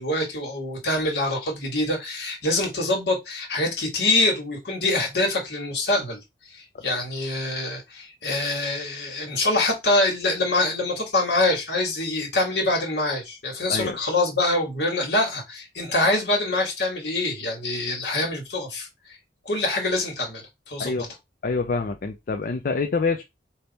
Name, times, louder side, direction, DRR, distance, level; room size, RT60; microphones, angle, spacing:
voice 1, 0.0-6.2 6.5-19.2 19.5-21.1, left 2 dB, 70° left, 1.8 m, -25 dB
voice 2, 20.8-21.1 21.4-23.2, left 4 dB, 55° left, 0.4 m, -26 dB
3.4 x 2.8 x 4.1 m
head